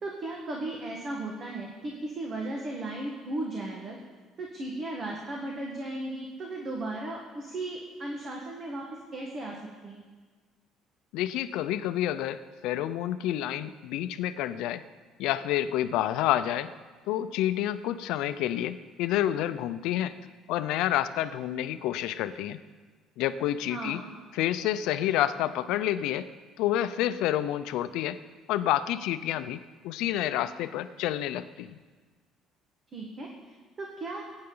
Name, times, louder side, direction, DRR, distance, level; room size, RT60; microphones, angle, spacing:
voice 1, 0.0-4.0 4.4-8.8 9.1-9.6 9.8-10.0 23.7-24.1 32.9-34.2, right 2 dB, 30° right, 0 dB, 1.4 m, -36 dB
voice 2, 11.1-14.8 15.2-16.7 17.1-20.1 20.5-22.6 23.2-24.0 24.3-26.3 26.6-28.2 28.5-31.8, left 12 dB, 70° left, 12 dB, 0.6 m, -29 dB
21.0 x 9.7 x 3.9 m, 1.4 s
cardioid pair, 170°, 0 cm